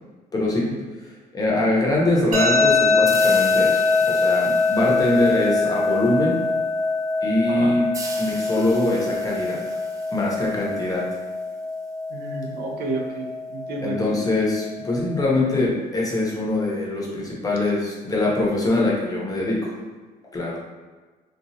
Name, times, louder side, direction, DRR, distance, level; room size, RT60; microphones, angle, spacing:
voice 1, 0.3-0.7 1.0-6.3 7.2-7.8 8.2-9.8 10.1-11.0 13.8-19.7 20.3-20.6, left 2 dB, 20° left, -4 dB, 0.8 m, -23 dB
sound 1, 2.3-15.3, left 3 dB, 50° right, 1.0 m, -23 dB
sound 2, 3.1-6.5 7.9-11.4, right 3 dB, 20° right, 0.4 m, -40 dB
voice 2, 12.1-14.2, right 3 dB, 65° right, 0 dB, 0.6 m, -31 dB
2.9 x 2.4 x 2.7 m, 1.3 s
cardioid pair, 110°, 17 cm